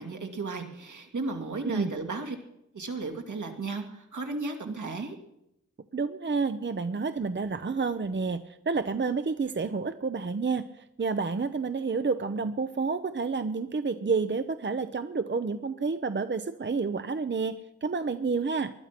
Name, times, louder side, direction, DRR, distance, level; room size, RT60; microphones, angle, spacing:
voice 1, 0.0-2.4 2.7-5.2, right 3 dB, 75° right, 2 dB, 2.6 m, -34 dB
voice 2, 5.9-10.6 11.0-18.7, right 4 dB, 40° right, 10 dB, 0.7 m, -29 dB
20.5 x 11.5 x 6.0 m, 0.83 s
wide cardioid pair, 70°, 30 cm